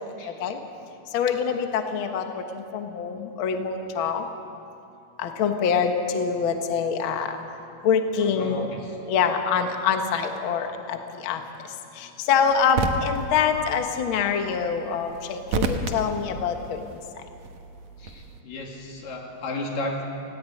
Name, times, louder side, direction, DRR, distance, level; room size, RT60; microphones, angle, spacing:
voice 1, 1.1-4.2 5.2-7.4 7.8-8.7 9.1-11.0 11.2-11.4 12.0-16.8, left 6 dB, 90° left, 5 dB, 1.1 m, -25 dB
voice 2, 8.2-9.0 18.0-20.0, left 2 dB, 60° left, 0 dB, 4.2 m, -34 dB
sound 1, 12.4-18.4, right 3 dB, 65° right, 2.0 m, -33 dB
19.0 x 17.5 x 9.2 m, 2.7 s
omnidirectional pair, 4.5 m